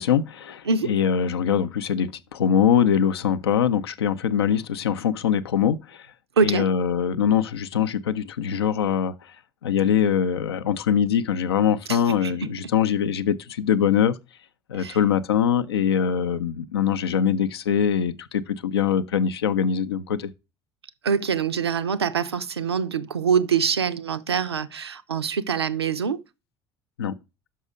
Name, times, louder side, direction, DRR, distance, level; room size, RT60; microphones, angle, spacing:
voice 1, 0.0-6.1 6.4-9.1 9.6-14.2 14.7-20.3 27.0-27.1, left 8 dB, 75° left, 0.5 m, -23 dB
voice 2, 6.4-6.7 11.9-12.3 14.8-15.0 21.0-26.2, right 6 dB, 85° right, 0.4 m, -24 dB
6.2 x 5.6 x 4.9 m
figure-of-eight pair, 60°, 13 cm